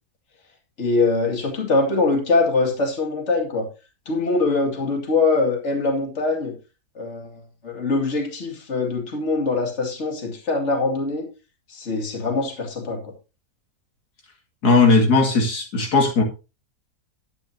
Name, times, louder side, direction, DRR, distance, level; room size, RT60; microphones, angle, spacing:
voice 1, 0.8-3.7 4.1-6.5 7.0-11.3 11.7-13.0, left 3 dB, 45° left, 2.6 m, -23 dB
voice 2, 14.6-16.2, left 3 dB, 80° left, 2.8 m, -17 dB
11.0 x 10.0 x 2.8 m
omnidirectional pair, 1.6 m